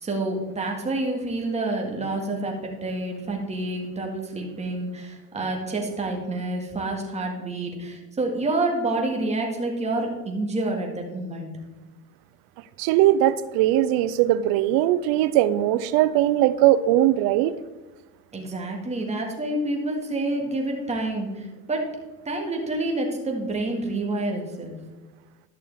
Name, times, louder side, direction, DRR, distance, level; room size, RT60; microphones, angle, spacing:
voice 1, 0.0-11.5 18.3-21.9 22.3-24.8, right 2 dB, 15° right, 1.9 m, -28 dB
voice 2, 12.8-17.5, right 13 dB, 60° right, 0.6 m, -20 dB
11.5 x 6.5 x 3.6 m
supercardioid pair, 120°, 41 cm